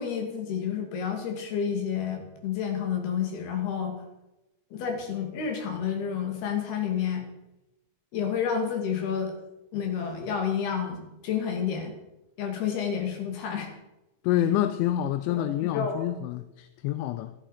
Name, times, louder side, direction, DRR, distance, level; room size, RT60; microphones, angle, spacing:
voice 1, 0.0-4.0 4.7-7.2 8.1-9.3 9.7-11.9 12.4-13.7 15.3-16.0, left 7 dB, 60° left, 4.2 m, -30 dB
voice 2, 14.2-17.3, left 12 dB, 85° left, 2.9 m, -27 dB
15.0 x 13.0 x 5.1 m
omnidirectional pair, 5.5 m